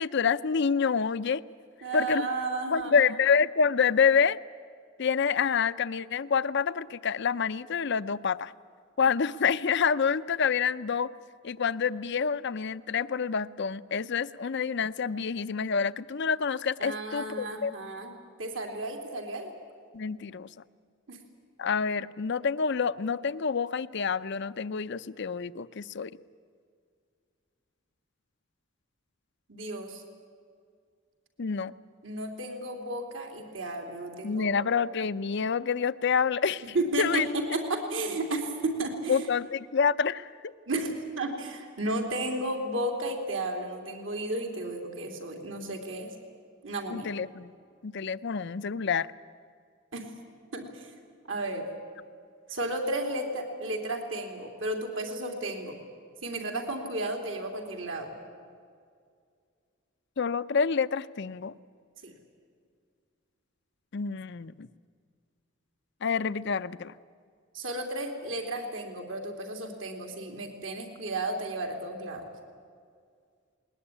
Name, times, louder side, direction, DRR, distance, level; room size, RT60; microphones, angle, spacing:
voice 1, 0.0-1.4 1.9-2.3 2.7-4.4 5.0-8.5 9.0-11.1 11.4-17.7 19.9-20.5 21.6-26.1 31.4-31.7 34.2-36.6 37.0-37.3 39.1-40.3 46.9-47.5 47.8-49.1 60.2-61.5 63.9-64.7 66.0-66.9, left 6 dB, 60° left, 15 dB, 0.6 m, -27 dB
voice 2, 1.8-3.1 16.8-19.5 21.1-21.2 29.5-30.0 32.0-34.6 36.7-39.3 40.7-46.1 46.6-47.1 49.9-50.1 50.5-50.9 51.3-51.7 52.5-55.8 56.2-58.1 62.0-62.1 67.5-72.2, right 2 dB, 70° right, 3 dB, 3.2 m, -33 dB
20.0 x 20.0 x 10.0 m, 2.2 s
head